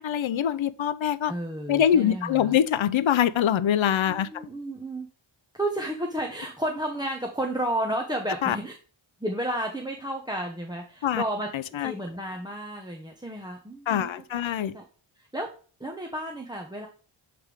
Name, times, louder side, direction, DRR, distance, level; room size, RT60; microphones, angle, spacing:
voice 1, 0.0-1.3 1.7-4.3 8.4-8.6 11.0-11.2 11.5-11.9 13.9-14.7, left 9 dB, 70° left, 0.6 m, -24 dB
voice 2, 1.3-2.6 4.1-5.1 5.5-8.7 9.2-14.1 14.6-14.8 15.2-15.5 15.8-16.9, right 1 dB, 10° right, 0.9 m, -32 dB
8.0 x 3.4 x 4.9 m
wide cardioid pair, 80°, 48 cm